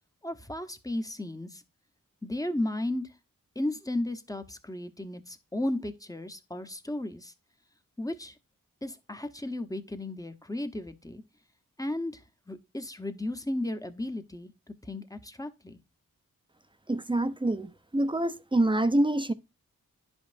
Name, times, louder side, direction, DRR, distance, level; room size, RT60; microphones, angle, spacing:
voice 1, 0.2-1.6 2.2-3.1 3.5-7.3 8.0-8.4 8.8-11.2 11.8-14.5 14.8-15.8, left 1 dB, 10° left, 1.0 m, -34 dB
voice 2, 16.9-19.3, right 1 dB, 15° right, 0.7 m, -26 dB
10.5 x 5.4 x 2.6 m
cardioid pair, 50°, 35 cm